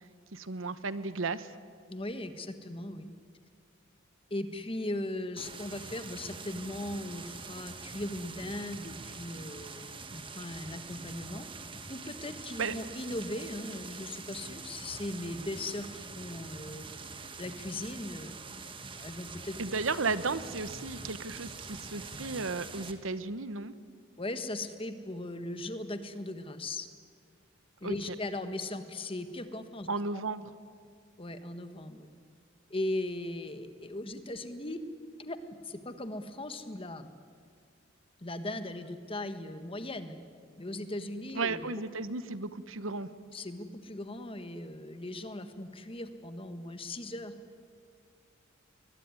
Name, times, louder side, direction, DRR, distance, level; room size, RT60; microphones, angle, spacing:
voice 1, 0.3-1.6 12.6-12.7 19.6-23.7 27.8-27.9 29.9-30.5 41.3-43.1, right 4 dB, 90° right, 14 dB, 1.1 m, -34 dB
voice 2, 1.9-3.1 4.3-11.5 11.9-16.8 17.4-19.6 24.2-26.9 27.8-30.2 31.2-32.1 32.7-34.8 35.2-35.4 35.6-37.1 38.2-40.1 40.6-41.7 43.3-47.3, left 1 dB, 30° left, 9 dB, 1.4 m, -38 dB
sound 1, 5.4-22.9, right 4 dB, 25° right, 1.5 m, -45 dB
22.0 x 21.0 x 9.7 m, 2.1 s
head